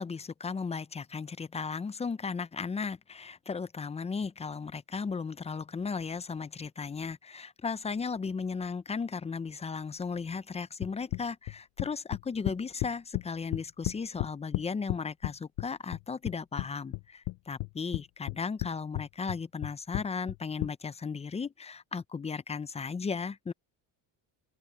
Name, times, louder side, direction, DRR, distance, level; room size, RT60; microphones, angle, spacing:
voice 1, 0.0-23.5, left 5 dB, 15° left, 0.4 m, -36 dB
sound 1, 10.8-13.2 13.5-15.3 15.6-16.7 16.9-18.0 18.3-18.7 18.9-20.7, left 23 dB, 70° left, 0.6 m, -33 dB
open air
cardioid pair, 110°, 45 cm